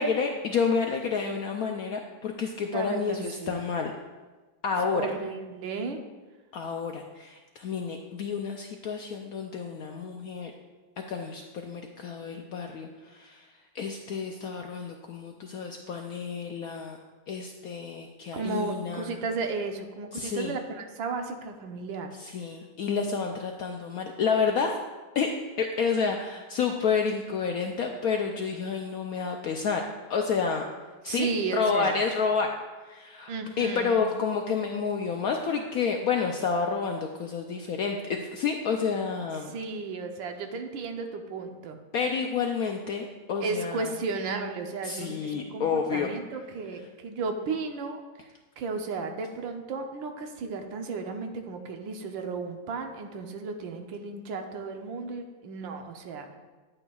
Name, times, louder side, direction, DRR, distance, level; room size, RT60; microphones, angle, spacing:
voice 1, 0.0-3.9 4.6-5.0 6.5-10.5 11.1-13.5 13.7-17.0 17.3-19.2 20.1-20.6 22.2-24.8 25.1-29.8 30.1-30.7 31.0-32.5 32.8-33.3 33.6-39.6 41.9-43.9 44.8-46.1, left 5 dB, 75° left, 3 dB, 0.8 m, -29 dB
voice 2, 2.7-3.7 4.8-6.0 18.3-22.1 31.1-32.0 33.3-34.1 39.5-41.8 43.4-48.0 48.6-56.4, right 4 dB, 85° right, 5 dB, 1.5 m, -34 dB
9.8 x 8.6 x 2.3 m, 1.3 s
omnidirectional pair, 2.1 m